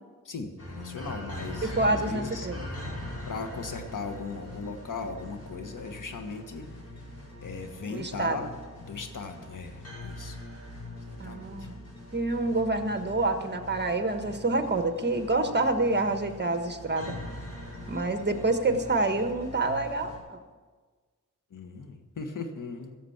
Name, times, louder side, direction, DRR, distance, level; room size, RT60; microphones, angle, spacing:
voice 1, 0.2-2.5 3.2-6.6 7.4-8.5 8.8-10.4 11.2-11.7 21.5-23.0, left 4 dB, 75° left, 6 dB, 1.5 m, -38 dB
sound 1, 0.6-20.2, left 1 dB, 50° left, 5.3 m, -42 dB
voice 2, 1.6-2.6 7.9-8.4 11.2-11.7 12.1-17.2 17.9-20.4, right 2 dB, 35° right, 7 dB, 1.4 m, -27 dB
15.5 x 7.3 x 7.3 m, 1.4 s
cardioid pair, 70°, 32 cm